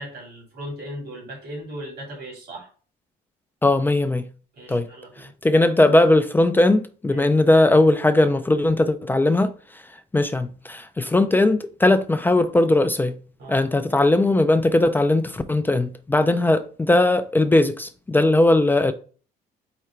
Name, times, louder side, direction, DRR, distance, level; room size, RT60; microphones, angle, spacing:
voice 1, 0.0-2.7 4.5-5.3 7.1-7.6 13.4-13.7, right 1 dB, 75° right, 2.4 m, -37 dB
voice 2, 3.6-4.3 4.7-4.9 5.4-9.5 10.1-13.2 13.5-18.9, left 2 dB, 10° left, 0.3 m, -19 dB
4.8 x 2.2 x 4.4 m
cardioid pair, 110°, 17 cm